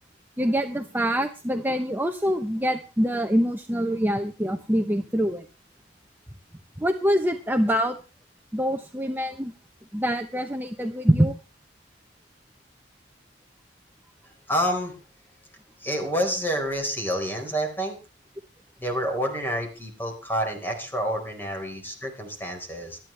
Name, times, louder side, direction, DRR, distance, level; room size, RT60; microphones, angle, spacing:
voice 1, 0.4-5.4 6.8-8.0 8.5-9.5 9.9-11.3, equal, 10° right, 6 dB, 0.8 m, -24 dB
voice 2, 14.5-14.9 15.8-17.9 18.8-23.0, equal, 10° left, 3 dB, 4.3 m, -28 dB
26.0 x 9.5 x 3.3 m, 0.32 s
head